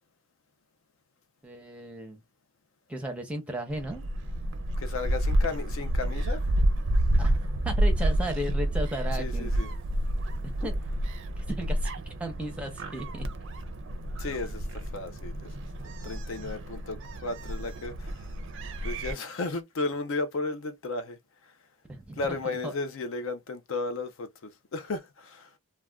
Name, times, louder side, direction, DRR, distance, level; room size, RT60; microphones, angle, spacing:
voice 1, 1.4-2.2 2.9-4.1 7.2-7.4 7.6-9.5 10.6-10.9 11.4-11.9 12.2-13.3 21.9-22.7, right 1 dB, 5° right, 0.7 m, -35 dB
Gull seagull, 3.7-19.1, right 1 dB, 55° right, 0.4 m, -29 dB
voice 2, 4.8-6.4 9.2-9.7 14.2-15.5 16.0-18.3 18.8-21.5 22.2-25.5, left 3 dB, 60° left, 0.4 m, -34 dB
2.4 x 2.2 x 3.3 m
head